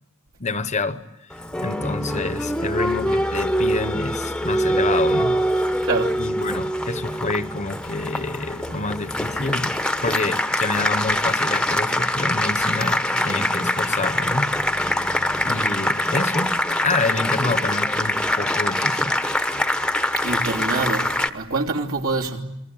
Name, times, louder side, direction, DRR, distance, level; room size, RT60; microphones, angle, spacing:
voice 1, 0.4-5.4 6.1-9.7 10.0-14.5 15.4-16.6 16.8-19.2, left 3 dB, 35° left, 1.1 m, -28 dB
Applause, 1.3-21.3, left 1 dB, 5° left, 1.1 m, -24 dB
voice 2, 5.8-6.2 9.5-9.6 20.2-22.4, right 3 dB, 65° right, 3.0 m, -26 dB
28.0 x 22.5 x 8.9 m
head